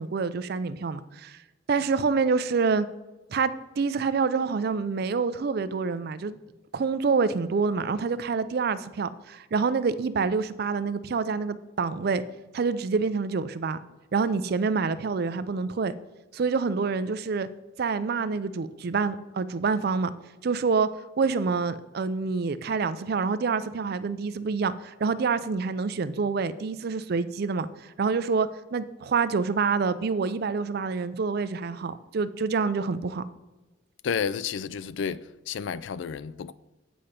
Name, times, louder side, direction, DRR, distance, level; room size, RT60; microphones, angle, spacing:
voice 1, 0.0-1.4 1.7-2.9 3.3-6.4 6.7-12.2 12.5-13.8 14.1-15.9 16.3-17.5 17.8-20.1 20.4-20.9 21.2-33.2, right 4 dB, 55° right, 0.4 m, -27 dB
voice 2, 34.0-36.5, left 6 dB, 65° left, 0.3 m, -31 dB
8.5 x 5.0 x 5.6 m
head